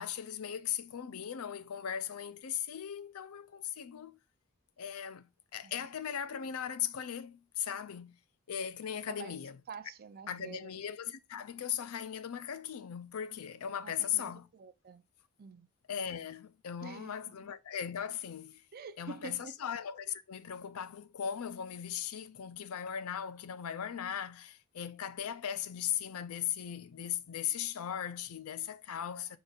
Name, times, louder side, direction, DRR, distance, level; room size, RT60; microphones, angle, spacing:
voice 1, 0.0-4.2 4.8-8.2 8.5-9.6 10.3-14.5 15.9-18.6 19.0-29.4, left 9 dB, 90° left, 0.5 m, -38 dB
voice 2, 9.1-9.4 9.7-10.8 13.8-15.0 15.4-15.7 16.8-17.1 18.7-19.5, right 5 dB, 45° right, 0.4 m, -47 dB
4.9 x 4.1 x 2.4 m
head